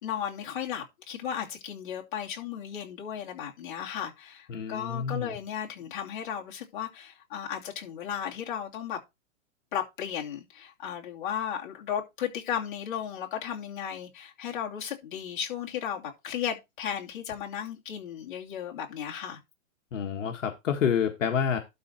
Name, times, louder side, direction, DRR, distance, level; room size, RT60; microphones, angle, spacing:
voice 1, 0.0-9.0 9.7-19.4, left 9 dB, 40° left, 2.7 m, -35 dB
voice 2, 4.5-5.4 19.9-21.6, left 7 dB, 70° left, 1.6 m, -28 dB
12.0 x 4.0 x 4.4 m
hypercardioid pair, 175°, 39 cm